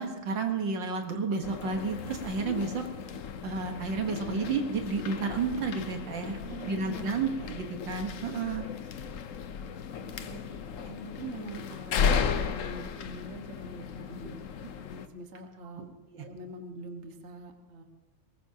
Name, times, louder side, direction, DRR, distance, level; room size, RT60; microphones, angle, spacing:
voice 1, 0.0-2.8 3.4-6.4 6.7-8.7 15.8-15.9 16.1-16.3, right 4 dB, 60° right, 4 dB, 1.9 m, -31 dB
sound 1, 1.4-15.1, left 6 dB, 70° left, 0.7 m, -35 dB
voice 2, 6.5-7.5 10.0-14.3 14.8-15.9 16.2-17.8, right 1 dB, 40° right, 4 dB, 1.4 m, -44 dB
21.5 x 19.0 x 2.8 m, 1.1 s
omnidirectional pair, 2.3 m